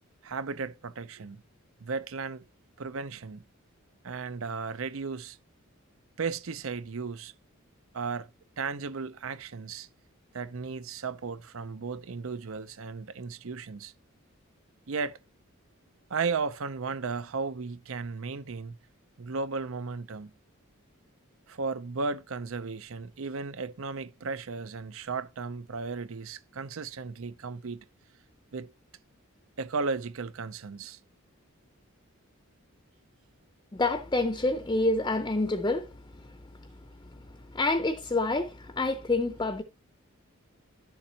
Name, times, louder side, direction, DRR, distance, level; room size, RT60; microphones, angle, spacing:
voice 1, 0.2-1.4 1.8-2.4 2.8-3.4 4.0-5.4 6.2-7.3 7.9-8.3 8.6-9.9 10.3-13.9 14.9-15.2 16.1-18.8 19.2-20.3 21.5-27.8 28.5-28.7 29.6-31.0, right 4 dB, 70° right, 0.6 m, -35 dB
voice 2, 33.7-36.7 37.5-39.6, left 2 dB, 20° left, 0.6 m, -28 dB
11.5 x 7.2 x 2.8 m
head